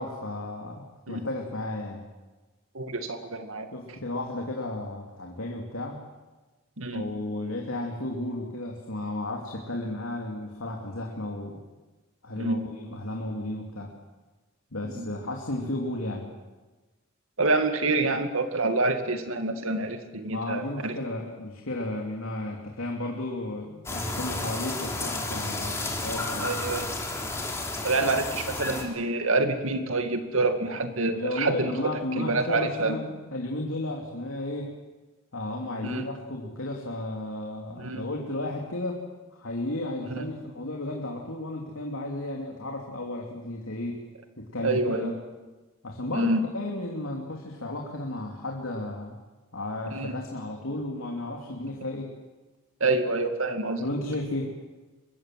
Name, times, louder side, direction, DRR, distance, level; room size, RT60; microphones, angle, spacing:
voice 1, 0.0-2.0 3.7-6.0 6.9-11.6 12.2-13.9 14.7-16.3 20.3-26.5 31.1-34.7 35.3-39.0 39.3-44.0 44.4-45.2 45.8-49.2 49.5-52.1 53.8-54.5, left 1 dB, 85° left, 0 dB, 3.0 m, -33 dB
voice 2, 2.7-3.7 6.8-7.0 12.4-12.6 14.8-15.1 17.4-20.9 24.1-24.2 26.4-26.9 27.8-31.9 32.2-33.0 35.8-36.0 37.8-38.0 40.0-40.3 44.6-45.1 46.1-46.4 49.9-50.1 52.8-53.8, right 3 dB, 80° right, 6 dB, 2.4 m, -27 dB
sound 1, 23.9-28.8, left 2 dB, 15° left, 3.6 m, -32 dB
25.0 x 21.5 x 7.7 m, 1.2 s
head